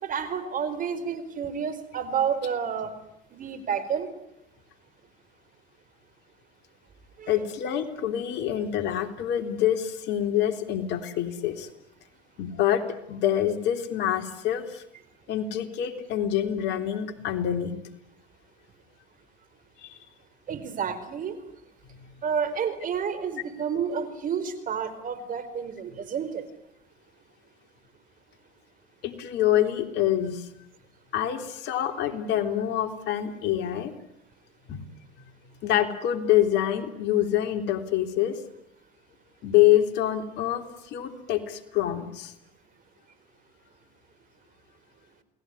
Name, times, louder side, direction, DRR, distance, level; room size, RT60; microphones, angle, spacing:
voice 1, 0.0-2.9 3.3-4.1 7.2-7.3 20.5-21.4 22.2-26.4, right 7 dB, 40° right, 13 dB, 4.5 m, -30 dB
voice 2, 7.3-11.7 12.4-14.8 15.3-17.7 19.8-20.0 29.0-30.5 31.1-33.9 34.7-34.8 35.6-38.4 39.4-42.3, left 11 dB, 60° left, 7 dB, 3.6 m, -26 dB
29.0 x 20.0 x 9.8 m, 0.82 s
hypercardioid pair, 90°, 21 cm